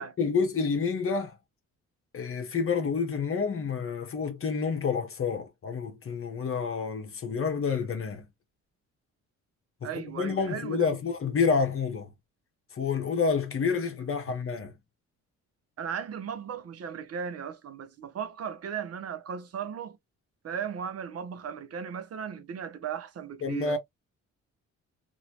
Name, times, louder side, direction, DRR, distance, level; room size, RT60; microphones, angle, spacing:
voice 1, 0.0-1.3 2.1-8.2 9.8-12.1 12.7-14.7 23.4-23.8, left 5 dB, 45° left, 1.1 m, -29 dB
voice 2, 9.8-10.9 15.8-20.0 20.4-23.8, right 7 dB, 55° right, 0.9 m, -36 dB
3.0 x 2.7 x 2.9 m
cardioid pair, 90°, 30 cm